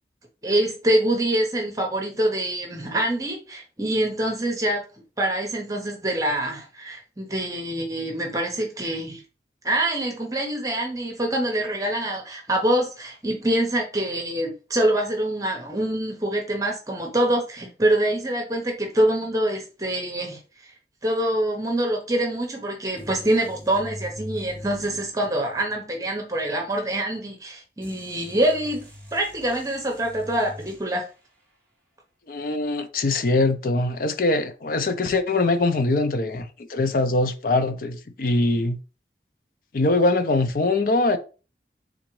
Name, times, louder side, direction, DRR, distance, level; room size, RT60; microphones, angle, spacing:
voice 1, 0.4-4.8 5.2-9.2 9.6-20.7 21.0-31.1, right 1 dB, 20° right, 0.8 m, -25 dB
sound 1, 22.9-25.8 27.8-31.3, equal, 10° left, 2.0 m, -42 dB
voice 2, 32.3-38.8 39.7-41.2, left 2 dB, 55° left, 0.5 m, -22 dB
3.8 x 3.5 x 3.1 m
head